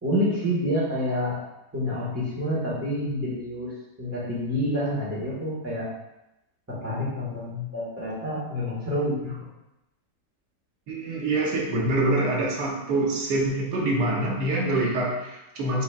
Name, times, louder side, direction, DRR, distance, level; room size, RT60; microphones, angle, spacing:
voice 1, 0.0-1.4 1.7-3.7 4.0-5.9 6.7-9.4, equal, 10° right, -7 dB, 1.3 m, -28 dB
voice 2, 10.9-15.8, right 2 dB, 80° right, -2 dB, 1.5 m, -25 dB
5.4 x 4.0 x 2.4 m, 0.93 s
omnidirectional pair, 1.8 m